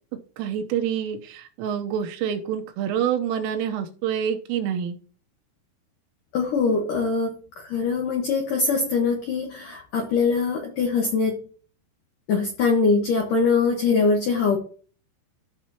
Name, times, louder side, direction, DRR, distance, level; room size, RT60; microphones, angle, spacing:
voice 1, 0.4-5.0, right 9 dB, 80° right, 5 dB, 3.5 m, -27 dB
voice 2, 6.3-11.4 12.3-14.6, left 4 dB, 75° left, 1 dB, 1.9 m, -23 dB
14.0 x 5.7 x 2.9 m, 0.41 s
omnidirectional pair, 5.9 m